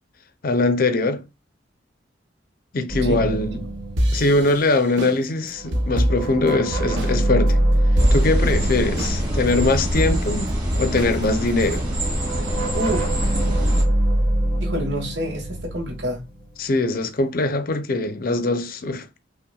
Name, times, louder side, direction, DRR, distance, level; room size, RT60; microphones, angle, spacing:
voice 1, 0.4-1.2 2.7-3.6 4.1-7.6 8.1-11.9 16.6-19.1, left 2 dB, 50° left, 0.6 m, -22 dB
sound 1, 2.9-5.1 5.5-10.6 11.6-17.0, right 1 dB, 45° right, 2.2 m, -24 dB
voice 2, 3.0-3.4 12.7-13.1 14.6-16.2, equal, 65° right, 1.2 m, -27 dB
sound 2, 4.0-7.2 7.5-7.6 8.0-8.5 9.0-9.5 10.0-11.7, equal, 85° right, 0.9 m, -25 dB
sound 3, 8.0-13.8, equal, 20° right, 2.0 m, -25 dB
5.5 x 2.3 x 2.3 m
head